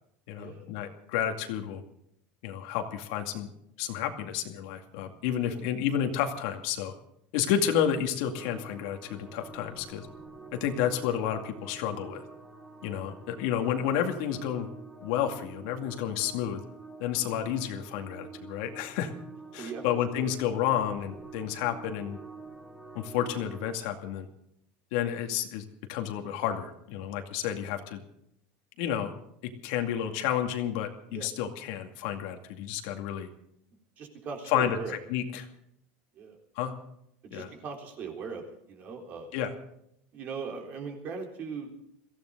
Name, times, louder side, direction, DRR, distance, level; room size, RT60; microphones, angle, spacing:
voice 1, 0.3-1.8 2.4-3.5 3.8-6.9 7.3-10.1 10.5-12.2 12.8-14.7 15.0-16.6 17.0-19.1 19.5-22.2 22.9-24.3 24.9-28.0 28.8-29.1 29.4-33.3 34.5-35.5 36.6-36.7 37.3-37.5 39.3-39.5, left 9 dB, 65° left, 5 dB, 2.3 m, -31 dB
sound 1, 8.2-23.7, right 4 dB, 5° right, 3.2 m, -47 dB
voice 2, 34.0-35.0 36.2-36.4 37.2-39.3 40.1-41.7, right 5 dB, 35° right, 2 dB, 3.8 m, -39 dB
23.0 x 16.0 x 3.9 m, 0.74 s
cardioid pair, 160°, 5 cm